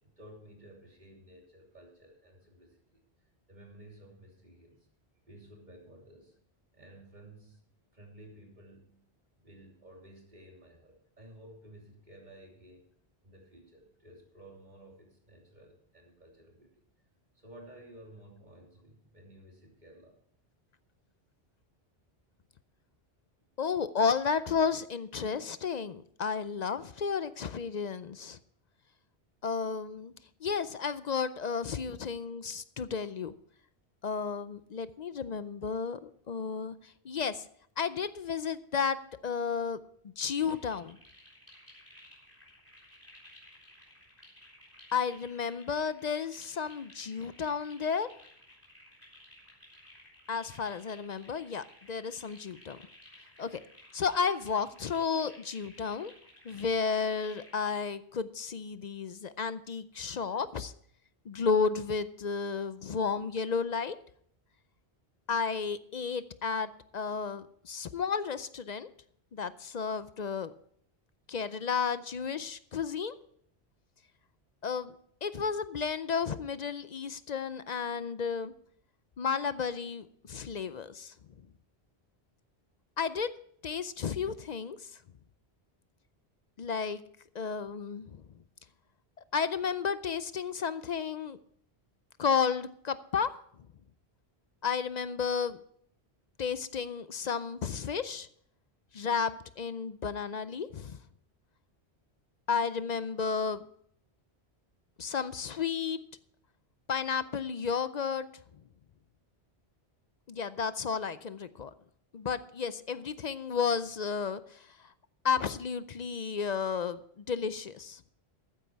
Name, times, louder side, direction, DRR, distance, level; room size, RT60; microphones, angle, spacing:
voice 1, 0.0-3.0 3.5-4.9 5.3-6.4 6.7-7.6 7.9-9.0 9.4-12.9 13.2-16.8 17.3-20.2 23.4-23.5, right 1 dB, 45° right, 0 dB, 3.2 m, -54 dB
voice 2, 23.6-28.4 29.4-30.1 30.4-33.3 34.0-37.5 37.8-39.0 39.2-39.8 40.2-41.0 44.9-48.1 50.3-52.8 53.4-53.6 53.9-56.1 56.4-60.7 61.3-64.0 65.3-68.9 69.3-70.5 71.3-73.1 74.6-74.9 75.2-78.5 79.2-81.1 83.0-83.3 83.6-84.9 86.6-87.0 87.3-88.2 89.3-91.4 92.2-93.3 94.6-95.6 96.4-98.3 98.9-101.0 102.5-103.6 105.0-106.0 106.9-108.3 110.3-111.7 112.1-114.8 115.2-118.0, left 6 dB, 50° left, 14 dB, 0.6 m, -32 dB
sound 1, 40.3-57.8, left 1 dB, 10° left, 3.9 m, -56 dB
14.0 x 9.5 x 4.6 m, 0.65 s
omnidirectional pair, 1.1 m